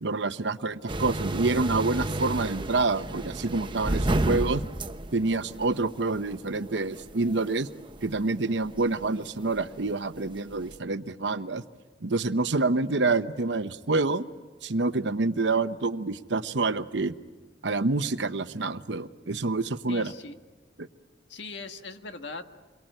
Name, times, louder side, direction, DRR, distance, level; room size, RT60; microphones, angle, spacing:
voice 1, 0.0-4.6 5.1-7.7 8.0-11.6 12.0-14.2 14.6-17.1 17.6-20.1 20.8-20.9, right 3 dB, 75° right, 12 dB, 0.9 m, -27 dB
sound 1, 0.9-10.8, right 1 dB, 25° right, 0.9 m, -32 dB
voice 2, 19.9-20.4 21.3-22.5, left 3 dB, 75° left, 7 dB, 1.6 m, -40 dB
28.0 x 23.0 x 9.1 m, 1.3 s
head